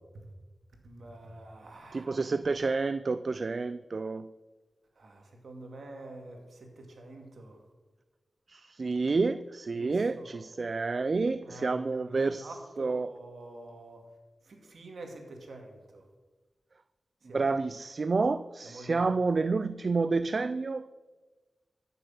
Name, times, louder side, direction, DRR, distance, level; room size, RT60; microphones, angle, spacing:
voice 1, 0.8-2.1 5.0-7.6 9.8-10.4 11.4-14.0 14.4-16.0 17.3-17.5 18.6-19.0, right 2 dB, 70° right, 3 dB, 2.4 m, -47 dB
voice 2, 1.9-4.3 8.5-13.1 17.3-20.9, right 3 dB, 55° right, 13 dB, 0.4 m, -29 dB
13.5 x 6.9 x 7.3 m, 1.3 s
cardioid pair, 60°, 0 cm